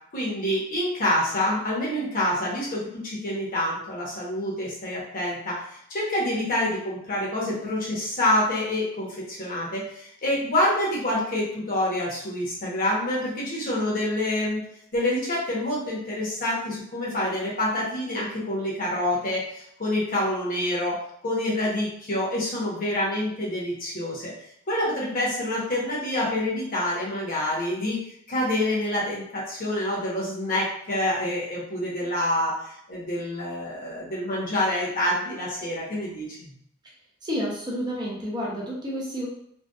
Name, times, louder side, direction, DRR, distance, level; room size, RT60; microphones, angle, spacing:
voice 1, 0.1-5.6 5.9-14.6 14.9-24.3 24.7-28.0 28.3-36.5, left 1 dB, 45° left, -5 dB, 0.8 m, -27 dB
voice 2, 37.2-39.3, equal, 20° right, -4 dB, 0.5 m, -30 dB
2.7 x 2.2 x 2.2 m, 0.69 s
head